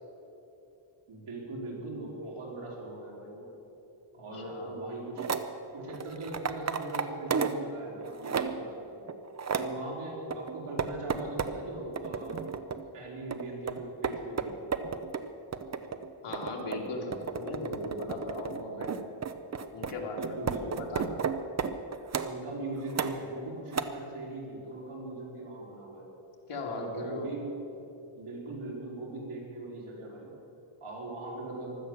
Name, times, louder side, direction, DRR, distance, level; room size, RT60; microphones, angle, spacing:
voice 1, 1.1-3.5 4.2-5.3 5.7-9.0 9.5-12.4 12.9-14.7 20.0-20.7 22.2-26.0 26.7-27.5 28.1-30.3 30.8-31.8, right 2 dB, 85° right, -4 dB, 4.6 m, -40 dB
voice 2, 4.3-4.8 16.2-19.1 19.7-21.2 26.5-27.4, left 2 dB, 85° left, -1 dB, 2.7 m, -38 dB
sound 1, 5.2-5.5 5.9-7.6 8.0-8.7 9.1-9.8 10.3-11.6 12.0-12.9 13.3-22.4 22.9-23.4 23.7-23.8, right 6 dB, 35° right, 0.7 m, -33 dB
15.5 x 12.5 x 7.2 m, 2.9 s
wide cardioid pair, 150°, 49 cm